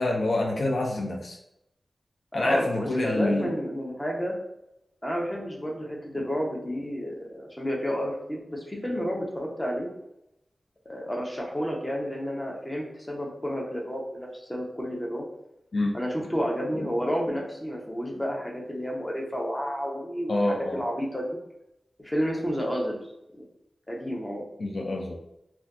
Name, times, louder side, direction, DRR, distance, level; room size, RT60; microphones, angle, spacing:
voice 1, 0.0-1.4 2.3-3.5 15.7-16.0 20.3-20.8 24.6-25.2, left 2 dB, 65° left, 0 dB, 0.4 m, -27 dB
voice 2, 2.4-4.4 5.0-9.9 10.9-15.2 15.9-20.4 20.7-21.4 22.0-23.0 23.3-23.4 23.9-24.5, equal, 15° left, -1 dB, 0.7 m, -30 dB
2.5 x 2.3 x 3.5 m, 0.83 s
wide cardioid pair, 90°, 0 cm